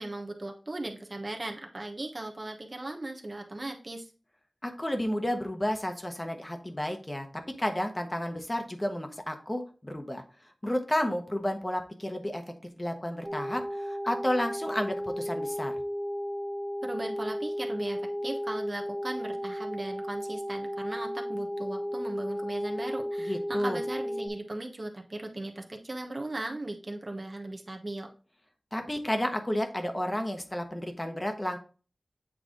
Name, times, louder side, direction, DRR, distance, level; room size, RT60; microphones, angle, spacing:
voice 1, 0.0-4.1 16.8-28.1, right 2 dB, 35° right, 2 dB, 1.0 m, -37 dB
voice 2, 4.6-10.2 10.6-12.4 12.8-15.7 23.2-23.8 28.7-31.6, left 1 dB, 20° left, 5 dB, 1.2 m, -31 dB
sound 1, 13.2-24.3, equal, 20° right, 1.3 m, -34 dB
8.5 x 3.4 x 3.8 m, 0.37 s
wide cardioid pair, 80°, 0 cm